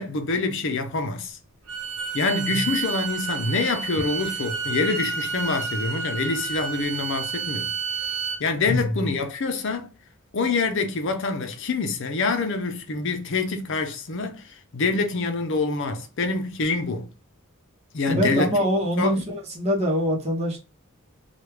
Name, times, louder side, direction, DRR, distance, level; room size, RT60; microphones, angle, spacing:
voice 1, 0.0-1.4 2.1-7.7 8.4-9.9 10.3-17.1 17.9-18.5 19.0-19.2, left 3 dB, 55° left, 0.6 m, -26 dB
Bowed string instrument, 1.7-8.4, right 5 dB, 65° right, 0.9 m, -30 dB
voice 2, 18.1-20.6, equal, 30° right, 1.0 m, -24 dB
3.1 x 2.3 x 3.1 m
head